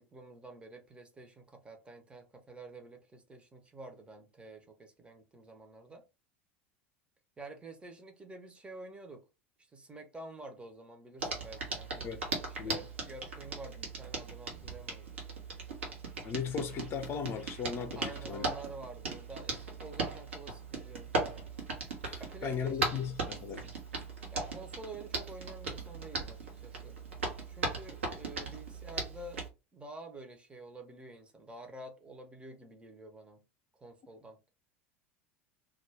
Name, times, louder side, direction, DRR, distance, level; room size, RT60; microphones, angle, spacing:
voice 1, 0.0-6.0 7.4-9.3 9.6-15.1 17.9-21.1 22.2-23.0 24.3-27.0 27.5-29.5 29.7-33.4 33.7-34.4, right 2 dB, 15° right, 0.7 m, -49 dB
Hands, 11.2-29.5, right 3 dB, 75° right, 0.9 m, -38 dB
voice 2, 16.2-18.4 22.0-23.7, left 7 dB, 35° left, 0.6 m, -37 dB
2.3 x 2.2 x 3.3 m
figure-of-eight pair, 75°, 7 cm